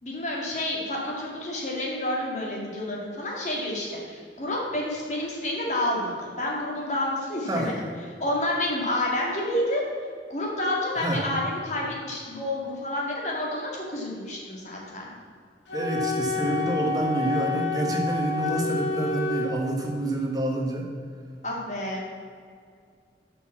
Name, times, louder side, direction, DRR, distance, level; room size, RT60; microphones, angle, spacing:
voice 1, 0.0-7.9 8.2-9.8 10.3-15.1 21.4-22.0, left 1 dB, 40° left, -3 dB, 1.8 m, -29 dB
Wind instrument woodwind instrument, 15.7-19.6, left 3 dB, 90° left, 1.8 m, -29 dB
voice 2, 15.7-20.9, right 1 dB, 20° right, 0 dB, 1.3 m, -27 dB
6.9 x 5.9 x 7.2 m, 2.1 s
head